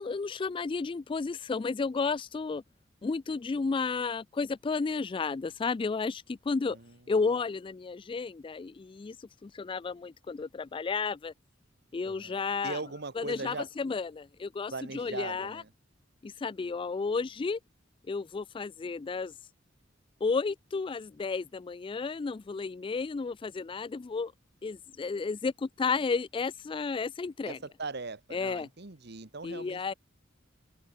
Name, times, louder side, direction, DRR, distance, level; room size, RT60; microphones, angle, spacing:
voice 1, 0.0-2.6 3.0-6.8 7.1-11.3 11.9-12.8 13.2-15.6 16.2-17.6 18.1-19.3 20.2-24.3 24.6-27.6 28.3-28.7 29.4-29.9, left 4 dB, 25° left, 0.3 m, -32 dB
voice 2, 12.1-13.7 14.7-15.7 27.4-29.9, right 3 dB, 55° right, 1.5 m, -40 dB
open air
head